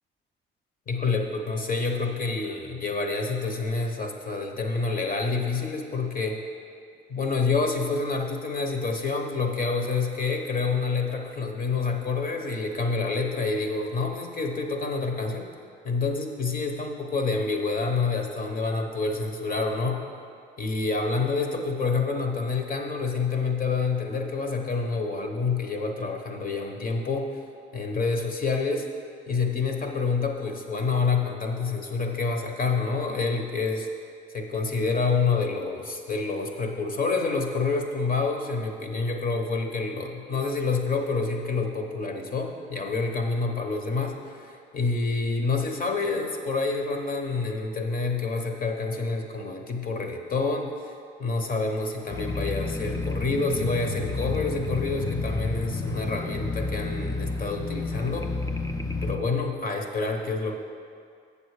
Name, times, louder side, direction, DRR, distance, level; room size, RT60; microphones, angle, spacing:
voice 1, 0.9-6.4 7.1-15.5 15.8-20.0 20.6-27.3 27.7-28.8 29.3-33.9 34.3-50.9 51.2-58.3 59.0-60.6, left 4 dB, 45° left, 3 dB, 1.1 m, -28 dB
sound 1, 52.1-59.2, left 3 dB, 15° left, 0.5 m, -31 dB
7.7 x 6.9 x 4.9 m, 2.3 s
cardioid pair, 90°, 20 cm